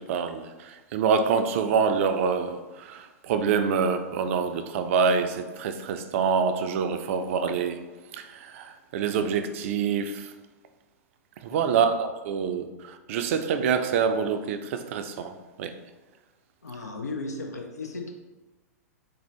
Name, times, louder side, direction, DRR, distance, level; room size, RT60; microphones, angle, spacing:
voice 1, 0.0-7.8 8.1-10.3 11.4-15.7, right 6 dB, 55° right, 8 dB, 0.4 m, -26 dB
voice 2, 16.6-18.1, left 3 dB, 85° left, 2 dB, 0.5 m, -35 dB
3.8 x 2.6 x 3.1 m, 1.2 s
hypercardioid pair, 105°, 9 cm